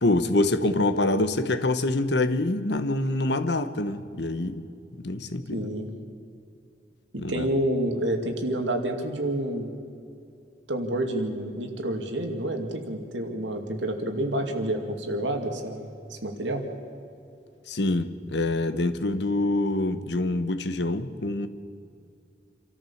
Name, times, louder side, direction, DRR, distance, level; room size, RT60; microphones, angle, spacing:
voice 1, 0.0-4.6 5.0-5.6 7.2-7.5 17.7-21.5, left 2 dB, 70° left, 10 dB, 1.1 m, -25 dB
voice 2, 5.5-5.9 7.1-9.7 10.7-16.6, right 1 dB, 90° right, 4 dB, 2.3 m, -29 dB
26.5 x 13.5 x 7.3 m, 2.5 s
head